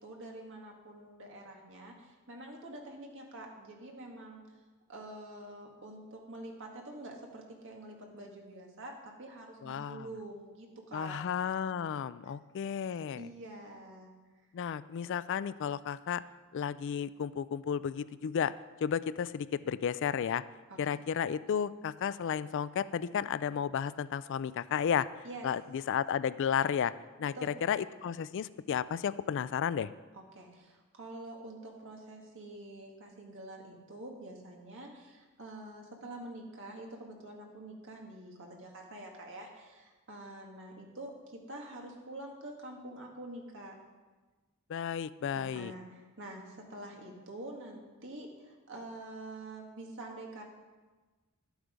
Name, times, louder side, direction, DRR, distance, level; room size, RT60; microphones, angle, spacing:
voice 1, 0.0-4.4 4.9-11.2 13.2-14.1 20.7-21.0 25.2-25.5 27.4-27.6 30.1-43.8 45.4-50.4, right 1 dB, 60° right, 1 dB, 1.9 m, -46 dB
voice 2, 9.6-10.1 10.9-13.3 14.5-16.2 16.5-18.5 18.8-20.4 20.8-25.1 25.4-26.9 27.2-29.9 44.7-45.7, left 8 dB, 55° left, 16 dB, 0.3 m, -33 dB
11.5 x 8.1 x 5.1 m, 1.3 s
head